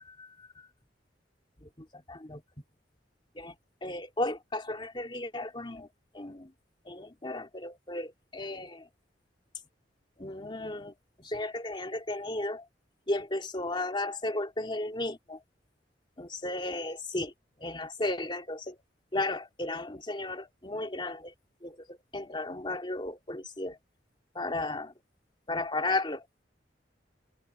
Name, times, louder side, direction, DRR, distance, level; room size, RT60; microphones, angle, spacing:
voice 1, 0.2-0.7 1.6-2.4 3.3-3.5 3.8-5.9 6.1-6.5 6.8-8.9 10.2-12.7 13.1-15.4 16.2-17.3 17.6-18.8 19.1-21.3 21.6-23.8 24.3-24.9 25.5-26.3, left 2 dB, 25° left, 3.0 m, -35 dB
open air
head